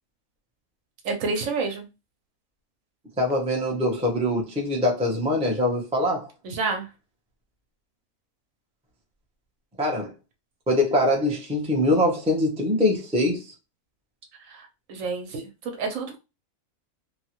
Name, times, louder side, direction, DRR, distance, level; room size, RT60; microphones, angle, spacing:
voice 1, 1.0-1.9 6.4-6.9 14.5-16.2, right 4 dB, 65° right, 1.0 m, -29 dB
voice 2, 3.2-6.3 9.8-10.1 10.7-13.5, left 1 dB, 10° right, 0.4 m, -23 dB
2.9 x 2.3 x 2.9 m
omnidirectional pair, 1.5 m